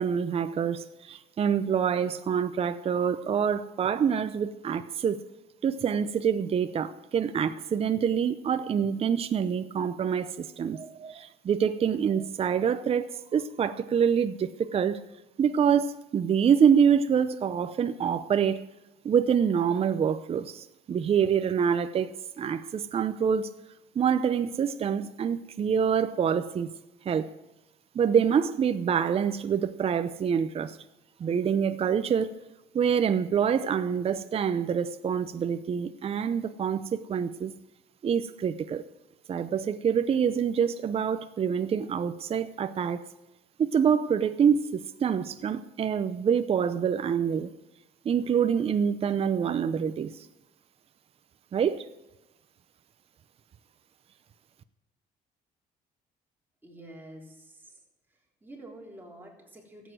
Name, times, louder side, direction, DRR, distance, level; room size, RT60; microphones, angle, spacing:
voice 1, 0.0-5.2 5.6-15.1 15.4-18.6 19.0-23.5 23.9-26.7 27.0-27.3 27.9-30.8 31.2-32.4 32.7-37.5 38.0-38.8 39.3-43.1 43.6-47.5 48.0-50.3 51.5-51.9, right 7 dB, 35° right, 0.6 m, -26 dB
voice 2, 56.6-57.8 58.4-59.9, right 1 dB, 10° right, 3.6 m, -47 dB
14.0 x 8.2 x 7.6 m
cardioid pair, 110°, 17 cm